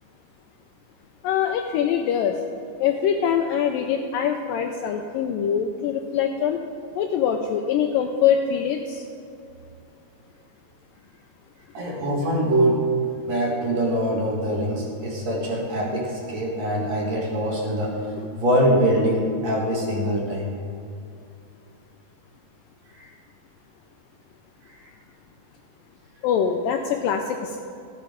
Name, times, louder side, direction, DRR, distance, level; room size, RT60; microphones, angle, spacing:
voice 1, 1.2-2.4 2.8-6.6 7.0-9.1 26.2-27.6, left 8 dB, 85° left, 4 dB, 2.0 m, -23 dB
voice 2, 11.7-12.9 13.3-17.9 18.3-20.5 23.0-23.1 24.7-24.8, equal, 50° right, -3 dB, 2.6 m, -23 dB
15.0 x 7.8 x 5.1 m, 2.6 s
omnidirectional pair, 4.5 m